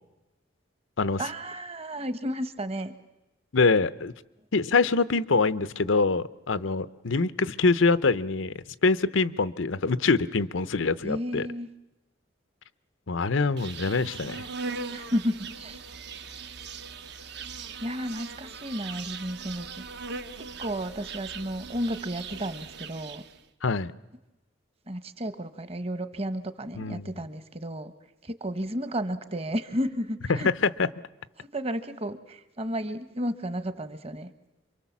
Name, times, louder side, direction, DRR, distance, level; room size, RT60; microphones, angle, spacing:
voice 1, 1.2-3.0 11.0-11.7 14.9-15.8 17.6-19.7 20.6-23.2 24.9-27.9 28.2-30.5 31.4-34.3, equal, 30° right, 11 dB, 1.2 m, -32 dB
voice 2, 3.5-4.1 4.5-8.5 8.8-11.5 13.1-14.4 23.6-23.9 26.7-27.1 30.3-30.9, left 4 dB, 90° left, 15 dB, 0.8 m, -24 dB
Insect, 13.6-23.4, right 5 dB, 60° right, 1.1 m, -40 dB
27.5 x 24.0 x 7.3 m, 0.98 s
head